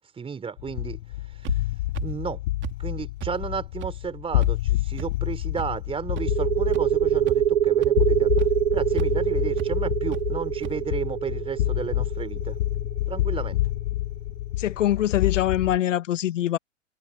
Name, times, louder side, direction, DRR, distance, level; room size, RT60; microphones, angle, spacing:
voice 1, 0.2-1.0 1.4-1.5 2.0-2.4 2.8-12.6 13.1-13.6, right 6 dB, 15° right, 3.9 m, -33 dB
sound 1, 0.6-15.8, left 17 dB, 50° left, 0.9 m, -28 dB
sound 2, 1.4-1.6 1.9-2.1 2.6-2.7 3.2-3.3 3.8-3.9 4.4-4.5 5.0-5.1 5.6-5.7 6.2-6.3 6.7-6.8 7.2-7.5 7.8-7.9 8.4-8.5 9.0-9.1 9.6-9.7 10.1-10.2 10.6-10.7, right 14 dB, 30° right, 3.1 m, -34 dB
sound 3, 6.2-13.6, right 11 dB, 60° right, 2.6 m, -24 dB
voice 2, 14.6-16.6, left 12 dB, 70° left, 1.5 m, -24 dB
hypercardioid pair, 120°, 39 cm